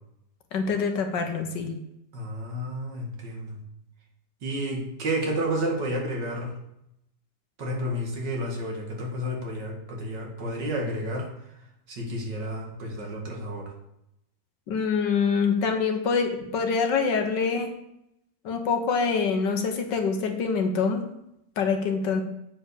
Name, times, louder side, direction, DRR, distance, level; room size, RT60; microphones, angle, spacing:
voice 1, 0.5-1.7 14.7-17.7 18.4-21.1 21.6-22.2, left 5 dB, 70° left, 5 dB, 1.8 m, -25 dB
voice 2, 2.1-3.6 4.4-6.5 7.6-11.3 11.9-13.7, equal, 70° right, 0 dB, 2.5 m, -31 dB
8.5 x 5.1 x 7.0 m, 0.81 s
omnidirectional pair, 2.0 m